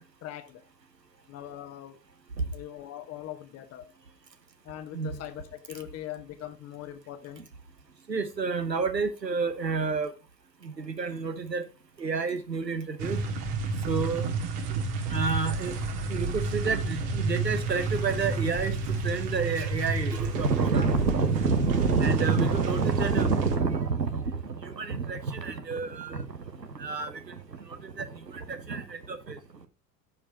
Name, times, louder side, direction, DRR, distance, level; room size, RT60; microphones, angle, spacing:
voice 1, 0.2-0.6 1.3-2.0 2.5-3.9 4.6-7.5, left 12 dB, 30° left, 1.3 m, -41 dB
voice 2, 8.1-10.1 10.8-11.6 12.0-13.2 13.9-14.3 15.1-15.7 16.1-18.8 19.0-24.2 24.6-26.2 26.8-27.1 28.0-28.1 28.3-29.4, right 5 dB, 90° right, 0.9 m, -28 dB
sound 1, 13.0-23.6, right 3 dB, 50° right, 2.0 m, -31 dB
14.5 x 5.0 x 2.8 m
figure-of-eight pair, 80°, 48 cm